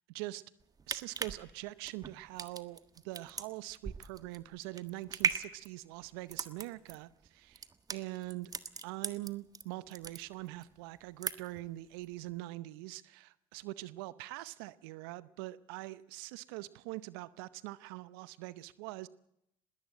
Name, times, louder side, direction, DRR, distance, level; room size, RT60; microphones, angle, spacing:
voice 1, 0.1-0.4 0.9-7.6 7.9-8.5 8.8-19.1, right 18 dB, 80° right, 18 dB, 0.7 m, -43 dB
sound 1, 0.6-9.6 9.9-10.7 11.0-11.7 12.0-12.1, right 5 dB, 30° right, 1.5 m, -38 dB
20.5 x 18.0 x 7.7 m, 0.78 s
hypercardioid pair, 60°, 12 cm